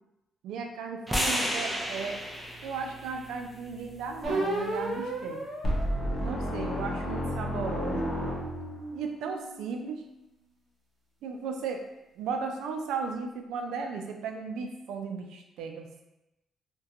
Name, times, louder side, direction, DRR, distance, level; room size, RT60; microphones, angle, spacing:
voice 1, 0.4-2.2 2.6-5.4 6.2-8.1 8.9-10.0 11.2-11.9 12.2-16.0, right 5 dB, 85° right, 3 dB, 0.3 m, -35 dB
sound 1, 1.1-5.3, equal, 5° right, 0.5 m, -34 dB
sound 2, 4.2-6.9 7.5-10.0, right 1 dB, 55° right, 0.8 m, -36 dB
sound 3, 5.6-8.9, equal, 45° left, 0.6 m, -31 dB
2.3 x 2.2 x 2.7 m, 0.91 s
cardioid pair, 90°, 0 cm